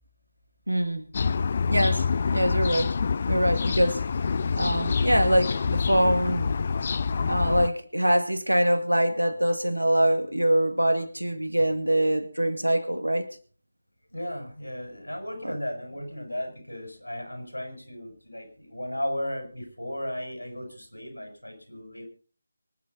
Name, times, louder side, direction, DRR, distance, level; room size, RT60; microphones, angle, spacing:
voice 1, 0.7-1.1 1.7-2.1 2.3-3.0 3.3-4.0 4.6-6.5 7.3-13.3 15.4-15.6, right 1 dB, 80° right, 2.1 m, -24 dB
sound 1, 1.1-7.7, left 5 dB, 35° left, 0.6 m, -26 dB
voice 2, 14.1-22.1, left 1 dB, 85° left, 6.2 m, -35 dB
24.5 x 10.5 x 4.0 m
figure-of-eight pair, 155°, 0 cm